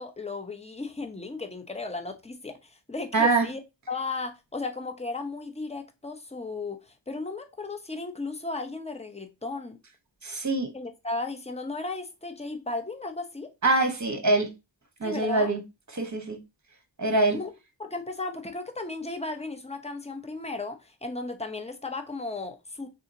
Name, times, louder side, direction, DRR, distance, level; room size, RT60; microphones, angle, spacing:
voice 1, 0.0-3.6 3.9-9.8 10.7-13.5 15.0-15.5 17.3-17.5 17.8-22.9, left 3 dB, 15° left, 0.7 m, -35 dB
voice 2, 3.1-3.5 10.2-10.7 13.6-14.5 15.0-15.6 15.9-16.4 17.0-17.4, right 2 dB, 40° right, 1.1 m, -24 dB
3.7 x 2.8 x 2.6 m
wide cardioid pair, 45°, 44 cm